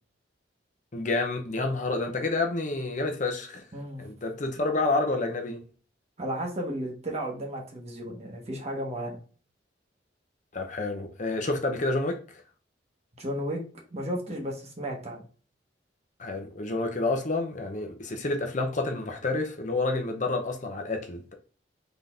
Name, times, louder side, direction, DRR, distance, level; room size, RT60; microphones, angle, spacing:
voice 1, 0.9-3.6 4.0-5.6 10.5-12.4 16.2-21.3, left 2 dB, 40° left, 0.7 m, -29 dB
voice 2, 3.7-4.1 6.2-9.2 13.2-13.6 13.9-15.2, right 1 dB, 35° right, 1.2 m, -33 dB
4.0 x 3.7 x 3.6 m
head